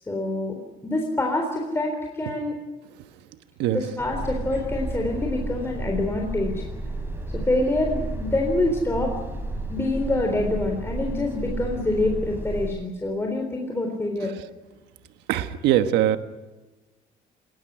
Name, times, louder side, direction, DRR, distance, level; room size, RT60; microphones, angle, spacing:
voice 1, 0.1-2.5 3.6-6.6 7.3-9.1 9.7-14.3, left 2 dB, 15° left, 1 dB, 3.8 m, -26 dB
sound 1, 4.0-12.7, right 2 dB, 10° right, 4.6 m, -32 dB
voice 2, 15.3-16.2, right 12 dB, 90° right, 10 dB, 1.4 m, -21 dB
20.0 x 18.0 x 10.0 m, 1.1 s
cardioid pair, 110°, 17 cm